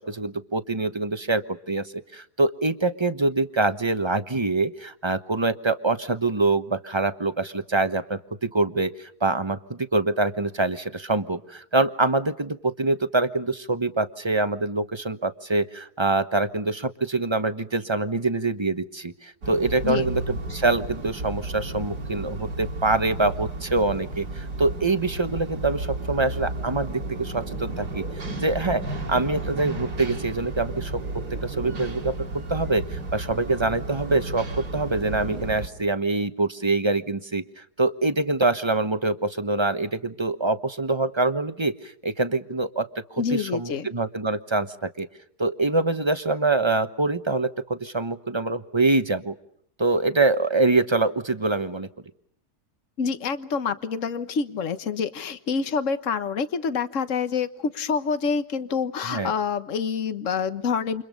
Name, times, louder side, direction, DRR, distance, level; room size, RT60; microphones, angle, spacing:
voice 1, 0.0-1.8 2.1-28.0 28.4-28.8 29.1-31.0 31.3-45.1 45.4-49.3 49.8-51.9 59.1-59.3, right 2 dB, 20° right, 10 dB, 1.0 m, -25 dB
sound 1, 19.4-35.7, right 2 dB, 90° right, 3.5 m, -33 dB
voice 2, 43.2-43.9 53.0-61.0, left 5 dB, 55° left, 11 dB, 1.6 m, -27 dB
29.5 x 28.0 x 5.3 m, 0.67 s
omnidirectional pair, 1.7 m